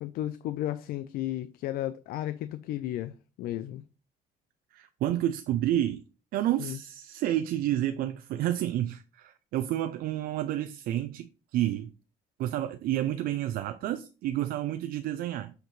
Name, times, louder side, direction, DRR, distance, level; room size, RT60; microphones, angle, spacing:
voice 1, 0.0-3.8 6.6-6.8, left 13 dB, 80° left, 0.4 m, -34 dB
voice 2, 4.7-6.0 6.3-11.9 12.4-15.5, right 12 dB, 75° right, 0.4 m, -30 dB
7.8 x 4.5 x 3.1 m
cardioid pair, 105°, 15 cm